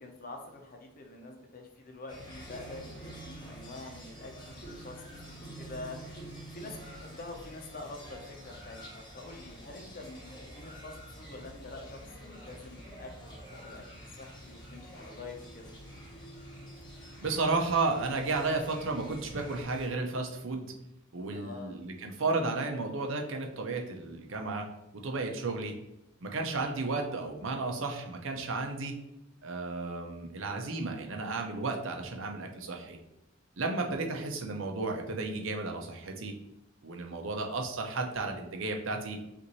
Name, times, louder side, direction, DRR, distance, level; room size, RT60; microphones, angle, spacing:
voice 1, 0.0-6.0 6.5-15.7 21.3-21.8 34.0-34.3, left 2 dB, 45° left, 2 dB, 0.8 m, -46 dB
sound 1, 2.1-19.9, right 1 dB, 20° left, 1.0 m, -47 dB
voice 2, 17.2-20.7 21.1-24.7 25.0-25.7 26.2-28.9 29.4-33.0 33.6-36.3 36.8-39.2, right 3 dB, 70° right, 3 dB, 0.7 m, -33 dB
5.6 x 2.6 x 3.0 m, 0.86 s
head